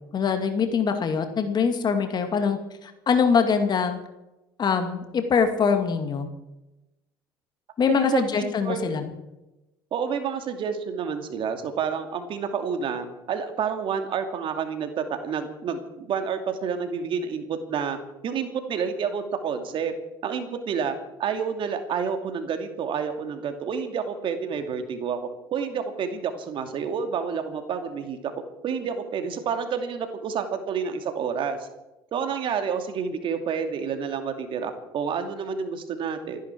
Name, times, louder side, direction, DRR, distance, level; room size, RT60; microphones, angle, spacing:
voice 1, 0.1-4.0 4.6-6.3 7.8-9.1, left 6 dB, 40° left, 7 dB, 2.2 m, -23 dB
voice 2, 7.9-8.9 9.9-18.0 18.2-19.9 20.2-25.2 25.5-28.3 28.6-31.7 32.1-36.4, right 6 dB, 50° right, 7 dB, 2.5 m, -29 dB
28.0 x 10.5 x 4.6 m, 0.99 s
hypercardioid pair, 60°, 11 cm